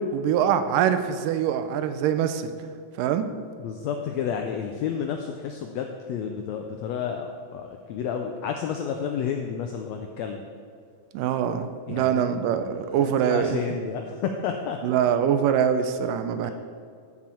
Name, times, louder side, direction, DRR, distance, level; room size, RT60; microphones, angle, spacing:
voice 1, 0.1-2.5 3.0-3.3 11.1-13.6 14.8-16.5, right 9 dB, 85° right, 10 dB, 2.2 m, -24 dB
voice 2, 3.6-10.4 11.9-12.2 12.7-14.8, left 7 dB, 90° left, 4 dB, 1.5 m, -31 dB
13.0 x 6.2 x 4.4 m, 2.3 s
omnidirectional pair, 3.7 m